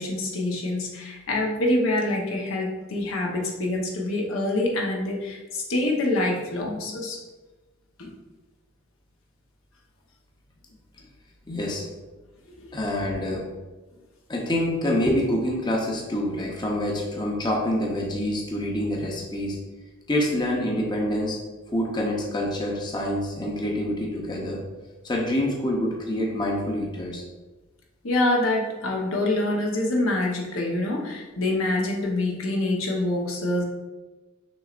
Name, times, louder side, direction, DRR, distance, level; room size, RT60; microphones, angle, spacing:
voice 1, 0.0-7.2 8.0-8.2 12.5-12.8 28.0-33.6, left 1 dB, 80° left, -1 dB, 0.9 m, -26 dB
voice 2, 11.5-11.9 12.7-13.4 14.3-19.6 20.1-21.4 21.7-24.6 25.0-27.2, left 1 dB, 20° left, -1 dB, 0.6 m, -26 dB
6.1 x 3.1 x 2.5 m, 1.2 s
head